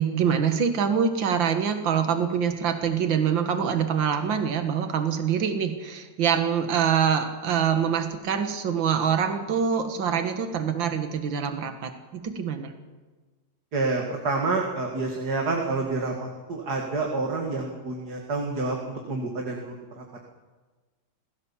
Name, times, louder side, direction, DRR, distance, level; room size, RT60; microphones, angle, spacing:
voice 1, 0.0-12.7, right 7 dB, 75° right, 7 dB, 2.3 m, -25 dB
voice 2, 13.7-20.0, right 3 dB, 55° right, 0 dB, 2.7 m, -28 dB
27.0 x 16.5 x 7.3 m, 1.3 s
omnidirectional pair, 2.1 m